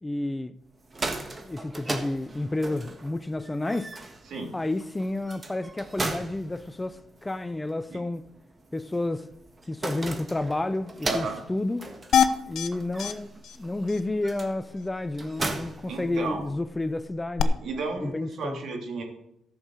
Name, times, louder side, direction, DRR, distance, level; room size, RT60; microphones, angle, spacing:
voice 1, 0.0-0.6 1.4-3.9 4.5-8.3 8.7-9.3 9.7-11.9 12.5-17.6 18.0-18.6, left 2 dB, 15° left, 0.5 m, -30 dB
sound 1, 0.7-16.7, right 2 dB, 25° right, 1.5 m, -38 dB
voice 2, 11.0-11.4 15.8-16.5 17.6-19.0, right 3 dB, 65° right, 3.1 m, -33 dB
sound 2, 12.1-12.7 13.0-13.1 13.4-13.6 13.9-14.0 17.4-17.5, left 8 dB, 70° left, 0.7 m, -22 dB
13.5 x 6.3 x 6.6 m
cardioid pair, 90°, 0 cm